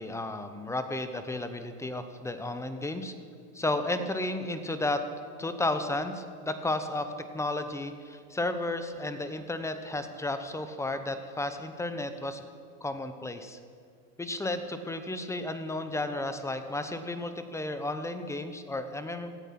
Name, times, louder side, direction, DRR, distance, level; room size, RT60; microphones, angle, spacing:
voice 1, 0.0-3.2 3.5-5.1 5.4-12.4 12.8-13.6 14.2-19.4, left 2 dB, 5° left, 9 dB, 0.9 m, -33 dB
17.5 x 13.5 x 6.0 m, 2.1 s
supercardioid pair, 125°, 46 cm